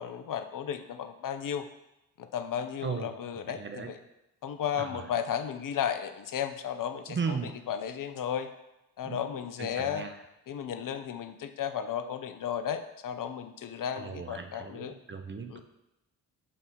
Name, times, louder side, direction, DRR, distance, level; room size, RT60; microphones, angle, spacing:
voice 1, 0.0-1.6 2.2-4.0 4.4-7.4 7.7-8.5 9.0-10.0 10.5-14.9 15.5-15.6, left 8 dB, 45° left, 9 dB, 0.6 m, -34 dB
voice 2, 2.8-3.9 4.8-5.1 7.1-7.6 9.0-9.2 9.6-10.2 13.9-15.6, right 5 dB, 25° right, 6 dB, 0.8 m, -37 dB
6.8 x 2.7 x 5.1 m, 0.92 s
hypercardioid pair, 40°, 49 cm